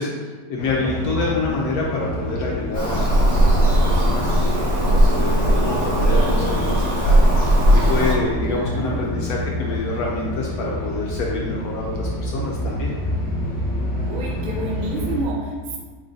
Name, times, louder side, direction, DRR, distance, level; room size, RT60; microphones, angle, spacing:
voice 1, 0.0-12.9, left 3 dB, 70° left, -2 dB, 1.0 m, -27 dB
sound 1, 0.6-15.2, left 1 dB, 10° left, 0.4 m, -28 dB
Bird vocalization bird call bird song, 2.7-8.1, right 1 dB, 90° right, 2.0 m, -17 dB
voice 2, 4.8-5.2 8.4-9.2 14.0-15.8, right 3 dB, 55° right, -3 dB, 0.5 m, -30 dB
4.9 x 2.6 x 3.7 m, 1.5 s
omnidirectional pair, 1.8 m